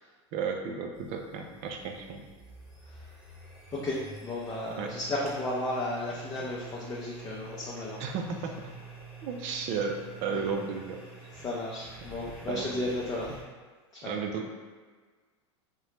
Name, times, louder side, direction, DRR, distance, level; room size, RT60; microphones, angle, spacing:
voice 1, 0.3-2.2 4.8-4.9 8.0-8.7 9.2-11.0 12.5-12.7 14.0-14.5, right 5 dB, 50° right, 3 dB, 0.4 m, -33 dB
sound 1, 0.9-13.4, right 4 dB, 5° right, 0.8 m, -47 dB
voice 2, 3.7-8.0 11.3-13.3 13.9-14.2, left 1 dB, 25° left, -5 dB, 0.5 m, -34 dB
2.7 x 2.1 x 3.1 m, 1.4 s
hypercardioid pair, 105°, 15 cm